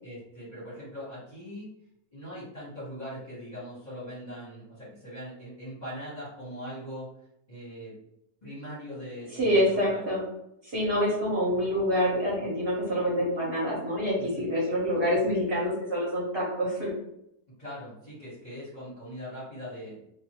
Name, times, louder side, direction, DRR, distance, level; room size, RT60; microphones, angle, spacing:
voice 1, 0.0-1.7 2.1-7.1 7.5-7.9 8.4-10.1 14.2-14.5 17.6-20.0, equal, 30° left, -8 dB, 1.0 m, -41 dB
voice 2, 9.4-10.2 10.6-16.9, equal, 45° right, -6 dB, 1.1 m, -26 dB
2.6 x 2.5 x 2.8 m, 0.78 s
omnidirectional pair, 1.6 m